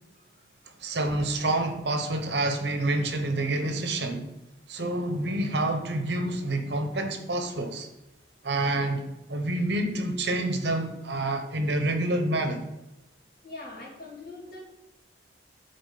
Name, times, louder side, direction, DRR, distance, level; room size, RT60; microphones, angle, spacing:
voice 1, 0.8-4.3 4.7-7.9 8.4-9.0 9.3-12.6, right 2 dB, 65° right, 7 dB, 0.9 m, -28 dB
voice 2, 13.4-14.6, left 2 dB, 50° left, -4 dB, 2.1 m, -42 dB
8.9 x 4.0 x 4.0 m, 0.92 s
head